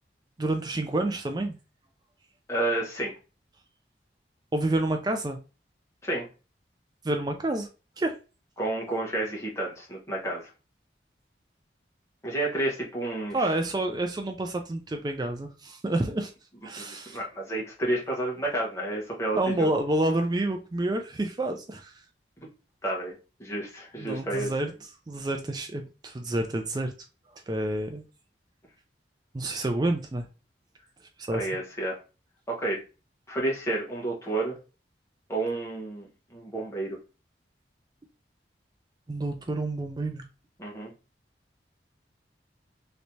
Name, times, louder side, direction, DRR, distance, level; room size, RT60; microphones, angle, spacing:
voice 1, 0.4-1.6 4.5-5.4 7.0-7.7 8.0-8.2 13.3-16.3 16.6-17.2 19.3-22.0 24.0-24.7 25.1-26.9 27.5-28.0 29.3-30.3 31.2-31.5 39.1-40.2, right 2 dB, 20° right, 0.3 m, -28 dB
voice 2, 2.5-3.1 6.0-6.3 8.6-10.5 12.2-13.5 16.8-19.7 22.8-23.1 23.4-24.5 31.3-32.0 32.5-32.8 33.3-34.6 35.3-37.0 40.6-40.9, right 2 dB, 15° left, 1.1 m, -30 dB
3.2 x 3.0 x 2.7 m
head